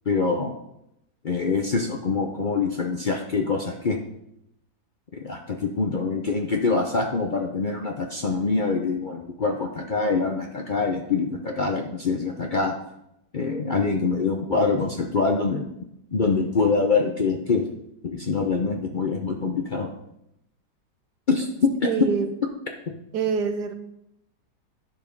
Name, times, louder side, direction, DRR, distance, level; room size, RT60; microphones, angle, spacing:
voice 1, 0.1-0.5 1.2-4.0 5.1-12.7 13.3-15.7 16.1-17.6 18.0-19.9 21.3-22.2, left 4 dB, 60° left, 2 dB, 0.5 m, -24 dB
voice 2, 21.8-22.3 23.1-23.7, right 6 dB, 75° right, 7 dB, 1.4 m, -25 dB
10.5 x 4.9 x 5.2 m, 0.81 s
omnidirectional pair, 1.9 m